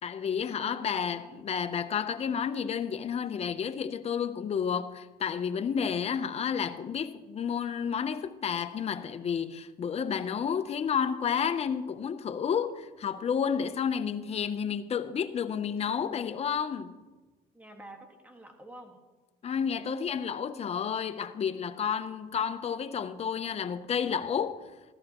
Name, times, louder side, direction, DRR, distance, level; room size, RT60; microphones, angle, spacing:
voice 1, 0.0-17.0 19.4-24.7, left 7 dB, 40° left, 0.7 m, -31 dB
voice 2, 0.6-1.3 17.5-19.0, right 1 dB, 10° right, 1.7 m, -48 dB
15.0 x 13.5 x 3.0 m
cardioid pair, 110°, 17 cm